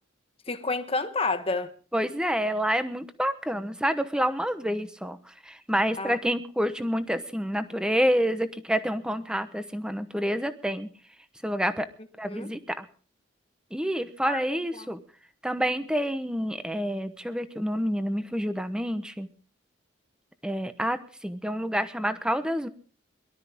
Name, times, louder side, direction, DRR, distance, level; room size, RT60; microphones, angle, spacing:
voice 1, 0.5-1.7 6.0-6.2 12.3-12.5 14.2-14.9, left 3 dB, 30° left, 1.3 m, -30 dB
voice 2, 1.9-10.9 11.4-11.9 12.2-12.9 13.7-15.0 15.4-19.3 20.4-22.7, equal, 5° right, 1.0 m, -28 dB
22.5 x 12.5 x 3.6 m
head